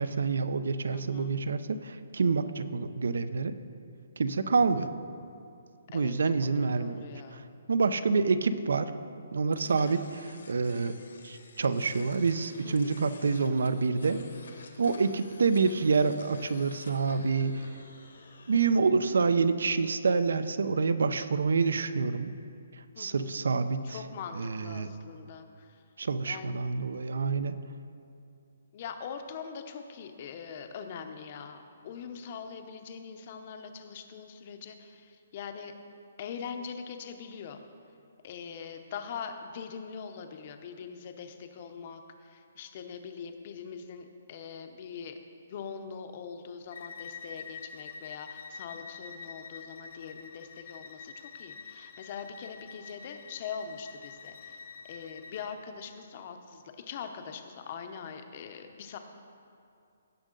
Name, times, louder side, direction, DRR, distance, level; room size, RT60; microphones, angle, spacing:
voice 1, 0.0-3.5 4.2-4.9 5.9-7.1 7.3-7.4 7.7-8.9 9.3-10.9 11.2-14.3 14.8-17.6 18.5-22.3 23.0-24.0 24.3-24.9 26.0-27.6, right 4 dB, 75° right, 12 dB, 0.5 m, -27 dB
voice 2, 0.9-1.3 5.9-7.5 9.6-9.9 12.6-13.0 22.9-23.3 23.8-25.8 26.2-26.6 28.7-35.7 36.2-37.6 38.2-45.2 45.5-54.6 54.9-59.0, left 6 dB, 30° left, 7 dB, 0.6 m, -42 dB
sound 1, 9.5-18.7, left 4 dB, 75° left, 1.2 m, -52 dB
Bowed string instrument, 46.7-55.5, left 6 dB, 60° left, 1.0 m, -46 dB
16.5 x 6.4 x 3.8 m, 2.5 s
hypercardioid pair, 175°, 0 cm